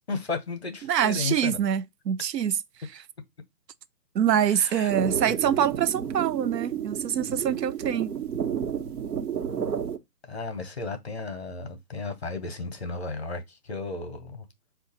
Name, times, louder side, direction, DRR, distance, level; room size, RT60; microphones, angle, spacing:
voice 1, 0.1-1.7 4.5-4.9 10.3-14.5, left 3 dB, 40° left, 0.8 m, -34 dB
voice 2, 0.8-2.6 4.1-8.1, right 9 dB, 90° right, 0.6 m, -25 dB
sound 1, 4.9-10.0, right 8 dB, 70° right, 1.1 m, -31 dB
4.5 x 2.4 x 4.0 m
hypercardioid pair, 180°, 48 cm